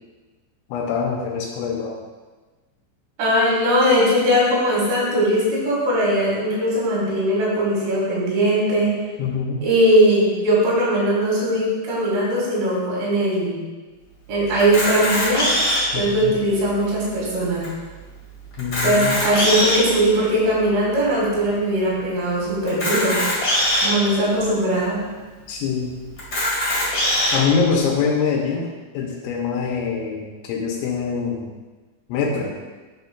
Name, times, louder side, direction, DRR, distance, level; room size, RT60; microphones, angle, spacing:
voice 1, 0.7-2.0 9.2-9.6 15.9-16.3 18.6-19.2 25.5-25.9 27.3-31.5 32.1-32.5, left 5 dB, 85° left, 0 dB, 2.8 m, -24 dB
voice 2, 3.2-8.9 9.6-13.6 14.3-15.5 15.9-17.7 18.8-23.3 23.8-25.0, equal, 70° right, -5 dB, 3.8 m, -20 dB
Camera, 14.6-16.0 16.6-16.7 17.0-17.1 17.6-17.7 18.5-19.9 20.5-20.6 22.7-23.9 24.6-24.7 25.0-25.1 26.2-27.4, left 1 dB, 50° left, 1.6 m, -21 dB
10.5 x 4.4 x 2.3 m, 1.3 s
omnidirectional pair, 5.5 m